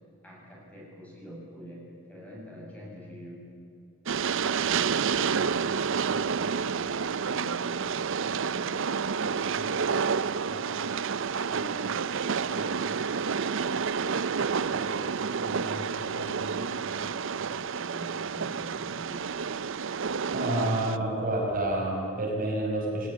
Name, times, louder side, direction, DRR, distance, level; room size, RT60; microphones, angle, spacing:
voice 1, 0.2-3.5 4.1-4.2 4.9-11.1 11.5-19.3, left 1 dB, 5° left, -4 dB, 7.6 m, -45 dB
Train, 4.1-21.0, right 6 dB, 65° right, 0.6 m, -29 dB
voice 2, 20.3-23.1, right 1 dB, 45° right, -1 dB, 5.5 m, -28 dB
23.5 x 18.5 x 9.9 m, 2.5 s
head